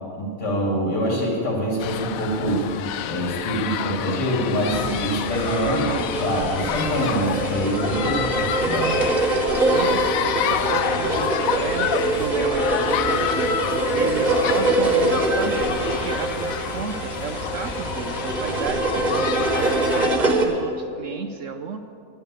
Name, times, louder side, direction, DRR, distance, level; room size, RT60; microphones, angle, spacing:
voice 1, 0.2-2.7 3.0-5.8 6.2-8.9, equal, 85° left, -3 dB, 3.4 m, -25 dB
sound 1, 1.8-20.1, left 10 dB, 70° left, 0.9 m, -29 dB
sound 2, 4.6-20.4, right 2 dB, 30° right, 1.3 m, -24 dB
voice 2, 5.6-6.1 9.7-21.8, right 5 dB, 65° right, 7 dB, 0.8 m, -32 dB
11.5 x 9.3 x 8.3 m, 2.4 s
omnidirectional pair, 1.8 m